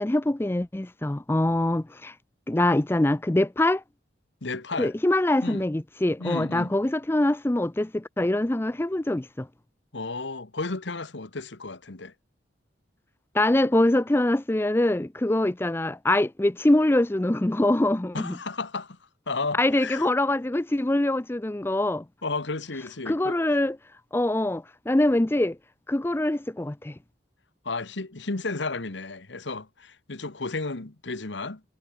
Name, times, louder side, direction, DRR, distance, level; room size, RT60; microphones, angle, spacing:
voice 1, 0.0-2.1 2.5-3.8 4.8-9.5 13.3-18.3 19.6-22.0 23.1-23.8 24.1-25.6 25.9-26.9, left 1 dB, 10° left, 0.4 m, -24 dB
voice 2, 4.4-4.9 5.4-5.6 6.2-6.7 9.9-12.1 18.1-19.0 19.3-20.1 22.2-23.4 27.6-31.6, left 3 dB, 75° left, 1.4 m, -33 dB
head